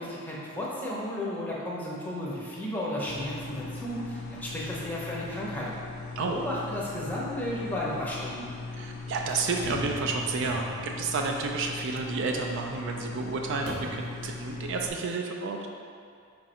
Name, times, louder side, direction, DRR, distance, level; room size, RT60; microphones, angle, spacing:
voice 1, 0.0-5.7 6.2-8.5, left 1 dB, 10° left, -5 dB, 0.6 m, -33 dB
sound 1, 3.1-14.9, left 3 dB, 45° left, 0.3 m, -39 dB
voice 2, 8.8-15.7, right 4 dB, 55° right, 1 dB, 0.3 m, -31 dB
sound 2, 9.6-11.1 13.7-14.2, equal, 40° right, 0.7 m, -39 dB
4.7 x 2.6 x 4.1 m, 2.3 s
head